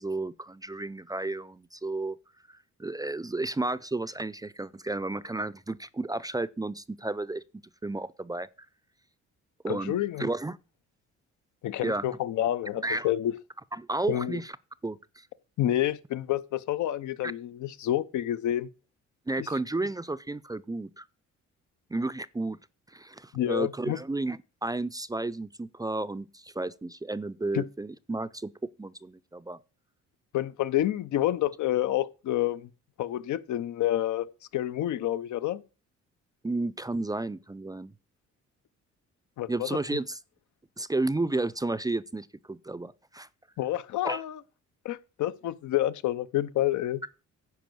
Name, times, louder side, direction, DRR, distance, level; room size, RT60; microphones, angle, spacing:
voice 1, 0.0-2.2 2.5-7.4 7.8-8.5 9.6-10.6 11.8-12.0 12.8-13.1 13.8-14.5 14.8-15.3 19.3-21.1 21.9-22.6 22.9-28.5 28.8-29.6 36.4-37.9 39.5-40.2 40.8-43.3 44.0-44.2, right 2 dB, 15° right, 0.4 m, -32 dB
voice 2, 9.7-10.3 11.6-13.4 14.1-14.4 15.6-18.7 19.4-19.5 23.3-24.0 27.5-27.7 30.3-32.7 33.0-34.3 34.5-35.6 39.4-39.8 43.6-44.4 44.8-47.0, left 13 dB, 75° left, 0.8 m, -28 dB
10.5 x 4.7 x 7.7 m
cardioid pair, 90°, 30 cm